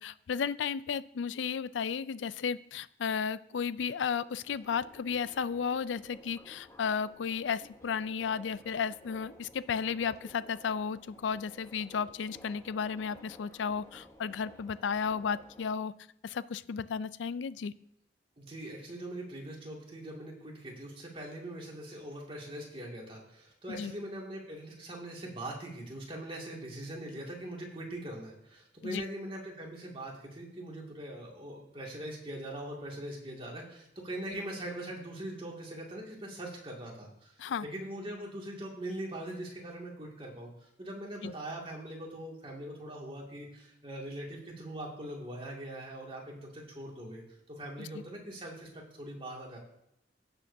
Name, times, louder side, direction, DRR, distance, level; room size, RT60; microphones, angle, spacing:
voice 1, 0.0-15.9 16.2-17.7 23.7-23.9 28.8-29.0 37.4-37.7 41.2-41.3 47.8-48.0, left 6 dB, 90° left, 17 dB, 0.4 m, -34 dB
Subway metro underground, 4.4-15.7, left 1 dB, 15° left, 0.9 m, -55 dB
voice 2, 18.4-49.6, right 1 dB, 30° right, -2 dB, 2.1 m, -42 dB
16.5 x 6.9 x 2.7 m, 0.80 s
head